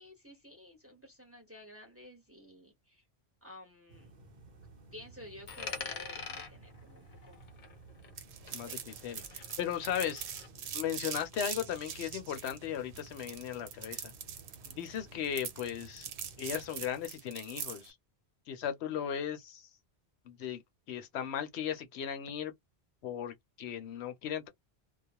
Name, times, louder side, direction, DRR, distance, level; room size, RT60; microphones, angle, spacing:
voice 1, 0.0-3.0 3.4-4.1 4.9-7.4 8.4-8.8, left 1 dB, 15° right, 0.8 m, -52 dB
sound 1, 3.9-17.1, right 3 dB, 45° right, 0.8 m, -56 dB
Coin (dropping), 5.5-8.2 8.5-10.5, left 5 dB, 50° left, 0.7 m, -45 dB
sound 2, 8.2-17.9, right 8 dB, 80° right, 0.9 m, -43 dB
voice 2, 8.5-10.2 10.7-14.1 14.6-16.1 16.4-18.0 18.5-19.7 20.3-20.6 20.9-22.5 23.0-24.5, left 9 dB, 75° left, 0.8 m, -37 dB
2.3 x 2.0 x 2.7 m
omnidirectional pair, 1.1 m